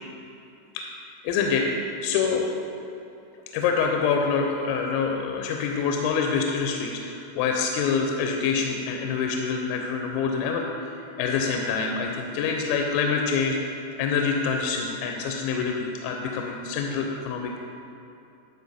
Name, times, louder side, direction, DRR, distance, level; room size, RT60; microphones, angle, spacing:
voice 1, 1.2-1.7 2.0-2.5 3.5-10.9 11.2-17.6, left 5 dB, 85° left, 2 dB, 3.2 m, -26 dB
12.0 x 4.3 x 4.1 m, 2.8 s
omnidirectional pair, 5.9 m